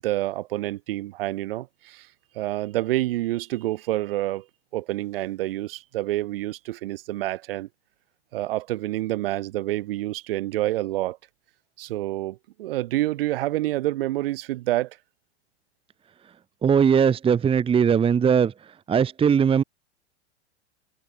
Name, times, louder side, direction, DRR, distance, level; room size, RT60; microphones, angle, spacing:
voice 1, 0.0-2.1 2.3-4.5 4.7-7.7 8.3-11.2 11.8-15.0, right 16 dB, 55° right, 3.0 m, -28 dB
voice 2, 16.6-18.5 18.9-19.6, right 7 dB, 15° right, 1.3 m, -19 dB
figure-of-eight pair, 95°, 34 cm